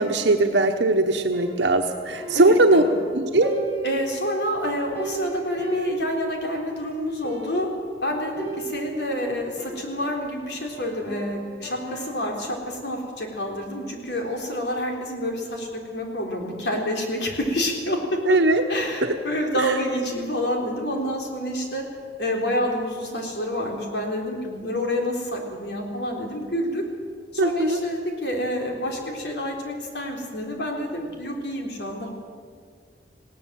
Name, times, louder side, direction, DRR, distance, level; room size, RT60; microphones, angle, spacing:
voice 1, 0.0-2.8 3.1-3.6 18.3-18.6 19.0-19.1 19.6-19.7 27.4-27.8, right 2 dB, 90° right, 3 dB, 1.1 m, -20 dB
sound 1, 1.3-3.1 3.4-6.7 7.0-7.1 7.2-7.8 8.4-10.4 10.8-12.4, right 4 dB, 10° left, 5.9 m, -37 dB
voice 2, 2.3-3.0 3.8-7.7 8.0-18.4 18.7-21.9 22.2-26.8 27.3-32.1, equal, 70° left, 1 dB, 3.8 m, -28 dB
20.0 x 17.0 x 7.6 m, 2.1 s
head